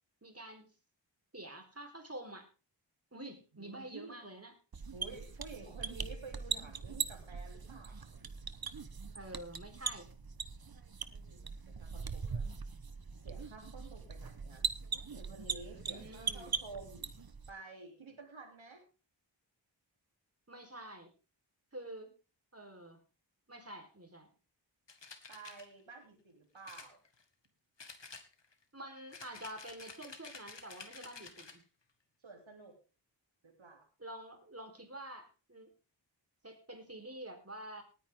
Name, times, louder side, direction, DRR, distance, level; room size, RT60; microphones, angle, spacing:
voice 1, 0.2-0.7 1.3-2.5 3.1-4.5 9.1-10.1 15.9-16.5 20.5-21.1 21.7-22.1 22.5-23.0 23.5-24.3 28.7-31.6 34.0-35.7 36.4-37.8, right 1 dB, 30° right, 5 dB, 4.3 m, -48 dB
voice 2, 3.5-4.2 4.9-8.2 11.1-12.5 13.2-14.6 15.1-17.1 17.5-18.8 25.3-27.0 32.2-32.8 33.4-33.8, right 3 dB, 85° right, 3 dB, 3.4 m, -51 dB
sound 1, 4.7-17.5, right 5 dB, 50° right, 1.1 m, -41 dB
sound 2, 24.9-25.7 26.6-27.5 27.8-28.6 29.1-31.6, left 4 dB, 65° left, 2.1 m, -51 dB
19.0 x 9.6 x 3.8 m, 0.33 s
cardioid pair, 40°, 45 cm